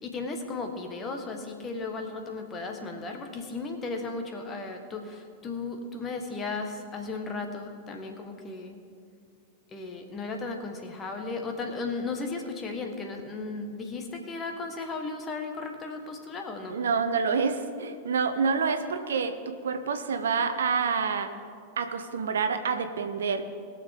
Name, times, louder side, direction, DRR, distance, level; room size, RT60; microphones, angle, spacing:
voice 1, 0.0-8.8 9.7-16.8, left 3 dB, 25° left, 4 dB, 1.5 m, -35 dB
voice 2, 16.7-21.3 21.8-23.4, right 5 dB, 65° right, 8 dB, 0.8 m, -27 dB
21.0 x 7.0 x 3.7 m, 2.2 s
figure-of-eight pair, 90°, 0 cm